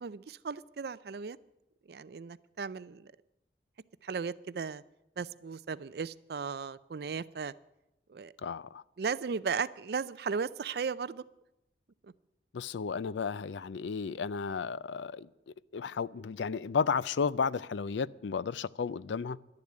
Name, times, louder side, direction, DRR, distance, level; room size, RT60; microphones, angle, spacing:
voice 1, 0.0-1.4 1.9-3.1 4.0-4.8 5.2-7.5 8.1-8.3 9.0-11.2 12.0-12.1, right 5 dB, 60° right, 0.4 m, -36 dB
voice 2, 8.4-8.8 12.5-15.3 15.7-19.4, left 5 dB, 85° left, 0.4 m, -33 dB
11.5 x 10.5 x 9.6 m
head